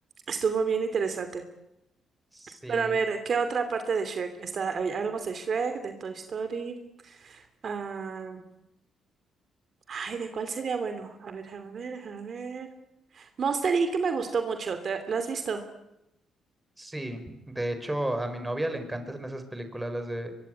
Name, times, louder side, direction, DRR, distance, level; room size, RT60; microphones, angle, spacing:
voice 1, 0.3-1.4 2.7-6.8 7.0-8.4 9.9-12.7 13.1-15.6, right 5 dB, 50° right, 8 dB, 2.7 m, -30 dB
voice 2, 2.3-2.9 16.8-20.3, right 1 dB, 10° right, 8 dB, 5.0 m, -33 dB
23.5 x 23.5 x 9.5 m, 0.87 s
cardioid pair, 90°, 0 cm